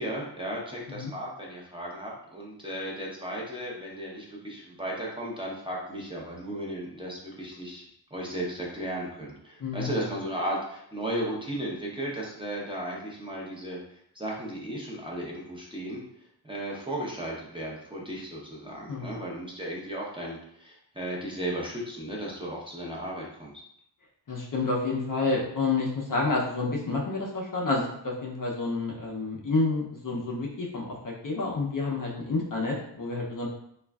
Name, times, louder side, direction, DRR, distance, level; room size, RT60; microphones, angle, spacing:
voice 1, 0.0-7.8 8.1-16.0 16.4-23.5, right 1 dB, 10° right, -4 dB, 0.8 m, -35 dB
voice 2, 9.6-10.0 18.9-19.1 24.3-33.5, left 3 dB, 45° left, -2 dB, 0.6 m, -29 dB
3.0 x 2.4 x 2.3 m, 0.71 s
cardioid pair, 55°, 45 cm